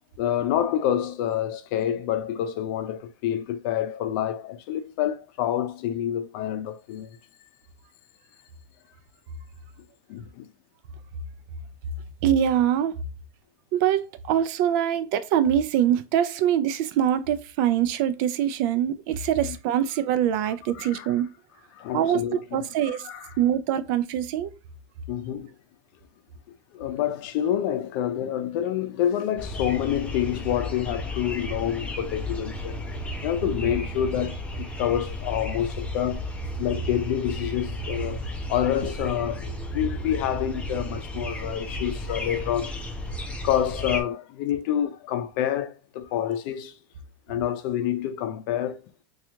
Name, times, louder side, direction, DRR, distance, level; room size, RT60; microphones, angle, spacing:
voice 1, 0.2-7.2 10.1-10.5 19.5-19.6 20.7-21.1 21.7-23.3 25.1-25.5 26.7-32.8 33.2-38.2 38.5-42.8 43.4-46.7 47.3-48.8, left 10 dB, 65° left, 0.5 m, -28 dB
voice 2, 12.2-13.0 13.7-21.3 21.9-23.1 23.4-24.5, right 10 dB, 65° right, 0.4 m, -24 dB
sound 1, 29.4-44.0, left 1 dB, 10° left, 0.5 m, -33 dB
2.8 x 2.4 x 3.4 m
supercardioid pair, 145°, 12 cm